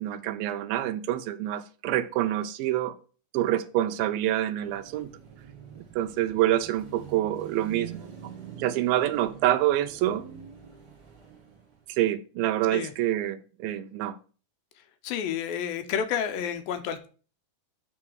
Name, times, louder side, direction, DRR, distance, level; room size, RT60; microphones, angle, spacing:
voice 1, 0.0-2.9 3.3-5.1 6.0-8.1 8.6-10.3 11.9-14.2, right 13 dB, 80° right, 2.3 m, -27 dB
Car passing by / Traffic noise roadway noise / Engine, 4.6-12.0, right 8 dB, 35° right, 1.8 m, -45 dB
voice 2, 15.0-17.1, left 8 dB, 85° left, 2.4 m, -30 dB
7.7 x 3.8 x 6.1 m
omnidirectional pair, 4.3 m